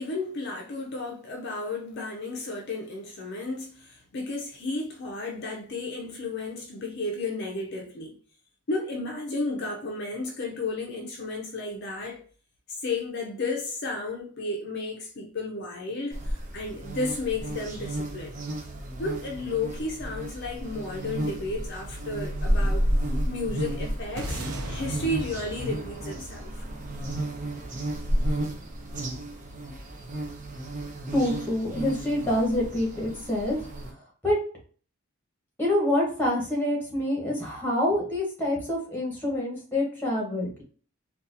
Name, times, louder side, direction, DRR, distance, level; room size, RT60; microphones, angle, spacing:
voice 1, 0.0-8.2 8.7-12.2 12.7-18.3 19.0-22.9 23.3-26.6, left 2 dB, 50° left, 0.5 m, -33 dB
sound 1, 16.1-33.9, right 1 dB, 35° right, 0.6 m, -32 dB
sound 2, 24.2-28.6, right 1 dB, 90° right, 0.6 m, -39 dB
voice 2, 31.1-33.6 34.2-34.4 35.6-40.6, left 1 dB, 10° left, 1.1 m, -26 dB
3.9 x 2.3 x 2.6 m
head